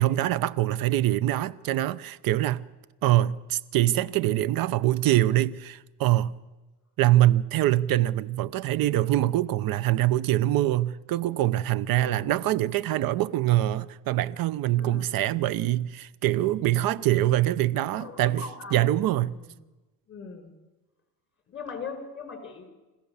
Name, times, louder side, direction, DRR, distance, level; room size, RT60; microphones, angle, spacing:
voice 1, 0.0-2.6 3.0-6.4 7.0-18.4 18.7-19.3, right 14 dB, 60° right, 0.8 m, -24 dB
voice 2, 11.9-12.3 14.8-15.3 17.9-18.9 19.2-19.5 20.1-20.5 21.5-22.7, left 5 dB, 30° left, 5.0 m, -41 dB
27.5 x 15.5 x 7.1 m
cardioid pair, 110°, 39 cm